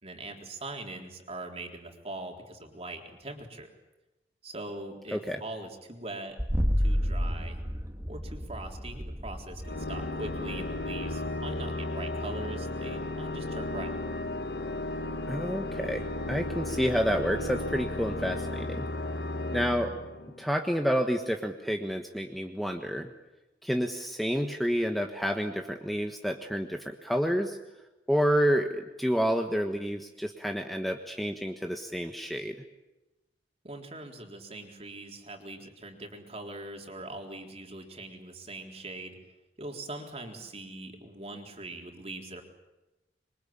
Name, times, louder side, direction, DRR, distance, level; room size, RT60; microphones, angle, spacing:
voice 1, 0.0-3.7 4.4-6.4 6.8-7.6 8.1-14.0 33.6-39.2 39.6-42.4, right 2 dB, 35° right, 3 dB, 3.8 m, -41 dB
sound 1, 6.4-12.0, equal, 15° right, 2.3 m, -31 dB
Organ, 9.6-20.6, left 2 dB, 70° left, 1.5 m, -34 dB
voice 2, 15.3-18.9 19.5-19.9 20.4-23.1 23.6-27.6 28.1-32.5, equal, ahead, 4 dB, 1.3 m, -29 dB
26.0 x 23.5 x 8.8 m, 1.0 s
head